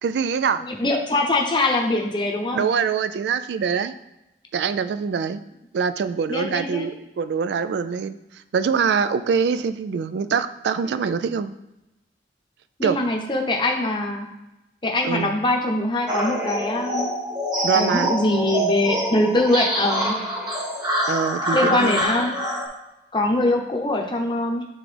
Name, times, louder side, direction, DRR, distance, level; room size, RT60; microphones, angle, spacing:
voice 1, 0.0-0.6 2.5-3.9 4.5-5.4 5.7-8.2 8.5-11.6 12.8-13.0 15.0-15.4 17.6-18.1 21.1-22.1, right 6 dB, 75° right, 12 dB, 0.3 m, -24 dB
voice 2, 0.6-2.7 6.3-6.9 12.8-14.3 14.8-17.1 17.7-20.2 21.5-22.4 23.1-24.6, left 2 dB, 25° left, 1 dB, 0.7 m, -23 dB
sound 1, 16.1-22.7, equal, 25° right, 1.2 m, -25 dB
8.7 x 3.6 x 3.4 m, 0.94 s
head